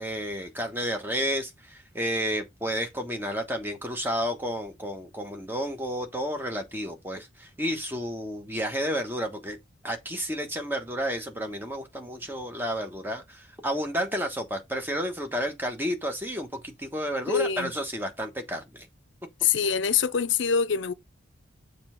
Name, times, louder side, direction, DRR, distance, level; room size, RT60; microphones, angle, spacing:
voice 1, 0.0-9.6 9.8-18.9, equal, 10° right, 1.2 m, -31 dB
voice 2, 17.3-17.7 19.4-20.9, left 7 dB, 75° left, 0.7 m, -24 dB
7.1 x 3.3 x 5.7 m
head